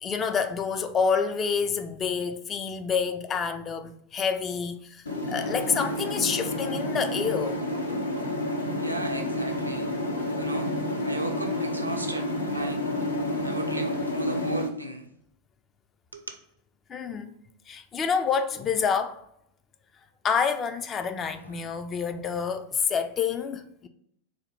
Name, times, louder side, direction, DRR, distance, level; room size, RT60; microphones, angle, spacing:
voice 1, 0.0-7.6 16.9-17.4 17.7-19.2 20.2-23.9, left 6 dB, 25° left, 0.3 m, -28 dB
sound 1, 5.1-14.7, left 1 dB, 80° left, 0.6 m, -30 dB
voice 2, 8.8-9.9 10.4-10.7 11.0-12.8 13.4-15.1 16.1-16.3 21.4-21.6, right 1 dB, 85° right, 0.5 m, -35 dB
3.9 x 2.2 x 3.2 m
figure-of-eight pair, 90°, 0 cm